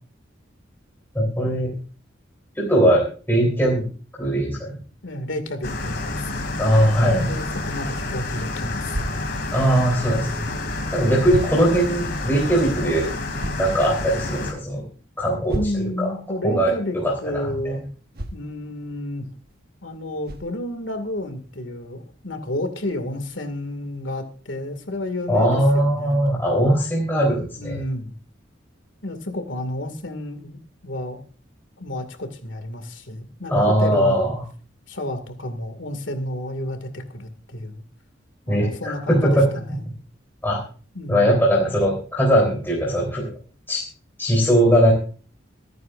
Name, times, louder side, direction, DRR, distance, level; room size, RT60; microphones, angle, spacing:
voice 1, 1.1-1.7 2.6-3.9 4.2-4.8 6.6-7.3 9.5-10.4 10.9-13.1 13.6-14.8 15.2-16.1 16.4-17.8 25.3-27.8 33.5-34.4 38.5-39.5 40.4-40.6 41.1-43.3 43.7-43.8 44.2-44.9, equal, 10° left, -3 dB, 3.6 m, -20 dB
voice 2, 5.0-6.5 7.1-9.4 15.5-17.8 18.3-19.3 19.8-26.2 27.6-28.1 29.0-31.3 31.8-34.3 34.9-37.8 38.5-39.8 40.9-41.4, left 1 dB, 75° left, 8 dB, 2.3 m, -31 dB
sound 1, 5.6-14.5, left 2 dB, 55° left, 2.8 m, -29 dB
sound 2, 8.9-9.1 10.5-10.6 11.3-11.6 13.4-13.7 15.5-15.9 18.1-18.4 19.5-19.6 20.2-20.5, right 1 dB, 50° right, 1.3 m, -30 dB
26.5 x 9.4 x 2.6 m, 0.39 s
head